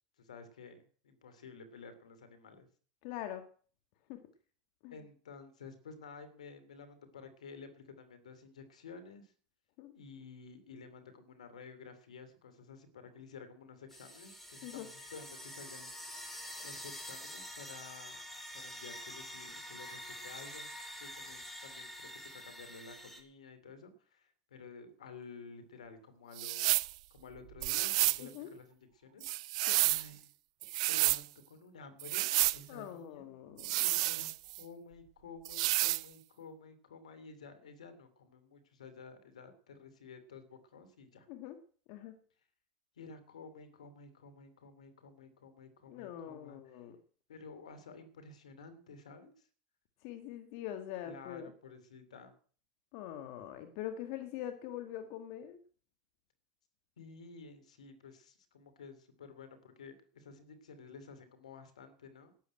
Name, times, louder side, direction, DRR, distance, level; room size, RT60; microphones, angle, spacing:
voice 1, 0.2-2.7 4.9-9.3 9.9-15.9 16.6-18.2 18.5-20.7 21.0-26.7 27.1-29.3 29.8-30.3 30.7-33.4 33.8-41.3 43.0-46.8 47.3-49.3 51.0-52.3 57.0-62.3, left 4 dB, 90° left, 11 dB, 2.8 m, -52 dB
voice 2, 3.0-3.5 4.1-4.2 4.8-5.0 9.8-9.9 14.6-14.9 28.2-28.5 29.7-29.8 32.7-33.9 41.3-41.6 41.9-42.2 45.9-47.0 50.0-51.5 52.9-55.6, left 11 dB, 60° left, 7 dB, 1.7 m, -43 dB
sound 1, 13.9-23.2, equal, 5° left, 3.9 m, -47 dB
sound 2, 26.4-26.9 27.6-28.2 29.2-30.1 30.6-31.2 32.0-32.6 33.6-34.6 35.4-36.0, right 19 dB, 70° right, 0.6 m, -30 dB
12.0 x 8.3 x 9.0 m, 0.44 s
hypercardioid pair, 95°, 4 cm